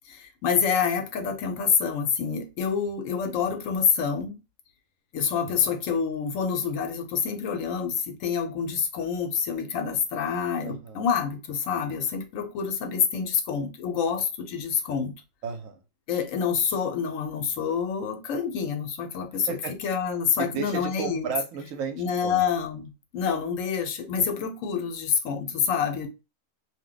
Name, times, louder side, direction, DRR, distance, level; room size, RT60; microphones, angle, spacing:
voice 1, 0.1-4.4 5.1-15.1 16.1-19.5 19.8-21.3 22.0-26.1, left 6 dB, 80° left, 1.0 m, -27 dB
voice 2, 10.6-11.0 15.4-15.8 19.5-19.7 20.4-22.4, right 6 dB, 90° right, 1.0 m, -33 dB
2.5 x 2.1 x 3.7 m
omnidirectional pair, 1.3 m